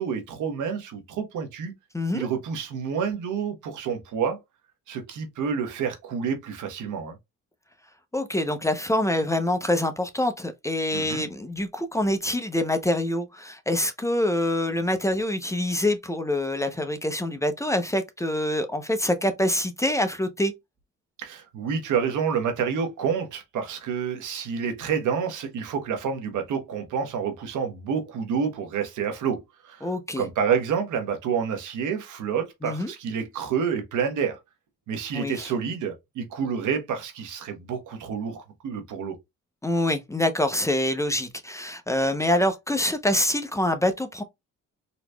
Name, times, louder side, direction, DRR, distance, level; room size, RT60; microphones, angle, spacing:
voice 1, 0.0-1.7 2.1-4.4 4.9-7.2 10.9-11.3 21.2-29.9 30.2-34.4 34.9-39.1, right 7 dB, 80° right, 1.2 m, -28 dB
voice 2, 1.9-2.3 8.1-20.5 29.8-30.2 32.6-32.9 35.1-35.5 39.6-44.2, left 1 dB, 10° left, 0.6 m, -25 dB
4.0 x 3.0 x 2.2 m
cardioid pair, 90°, 30 cm